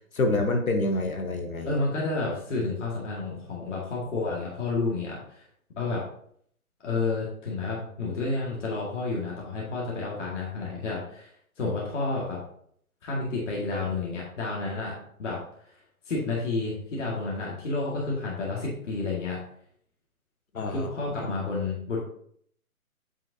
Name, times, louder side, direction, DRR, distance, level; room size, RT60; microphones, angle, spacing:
voice 1, 0.1-1.7 20.5-20.9 21.2-21.3, left 2 dB, 70° left, 4 dB, 1.2 m, -27 dB
voice 2, 1.6-5.4 5.8-6.0 6.8-11.3 11.6-12.4 13.0-15.4 16.1-19.4 20.7-22.0, left 3 dB, 55° left, -4 dB, 2.0 m, -30 dB
8.1 x 5.6 x 2.7 m, 0.65 s
figure-of-eight pair, 150°, 44 cm